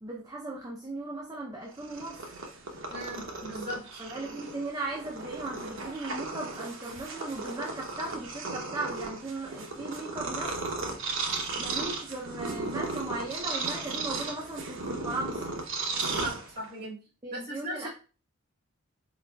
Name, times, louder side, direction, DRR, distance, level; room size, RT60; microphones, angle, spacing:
voice 1, 0.0-2.2 4.0-10.8 11.6-15.4 17.2-17.9, right 2 dB, 15° right, -2 dB, 0.5 m, -37 dB
Purr, 1.7-16.9, right 3 dB, 60° right, 0.8 m, -35 dB
voice 2, 2.9-4.0 16.2-17.0 17.3-17.9, right 1 dB, 45° right, -6 dB, 2.0 m, -38 dB
4.1 x 3.9 x 2.3 m, 0.36 s
head